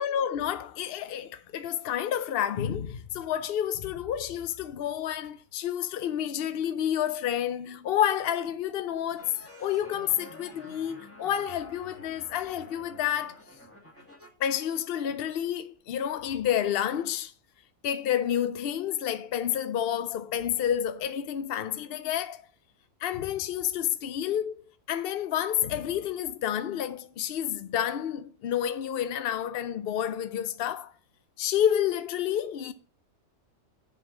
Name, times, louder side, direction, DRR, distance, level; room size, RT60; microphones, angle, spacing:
voice 1, 0.0-9.3 9.6-13.4 14.4-17.3 17.8-22.4 23.0-30.9 31.4-32.7, left 10 dB, 65° left, 0.6 m, -29 dB
sound 1, 9.2-14.3, equal, 10° left, 1.6 m, -49 dB
7.8 x 5.5 x 6.1 m
omnidirectional pair, 1.5 m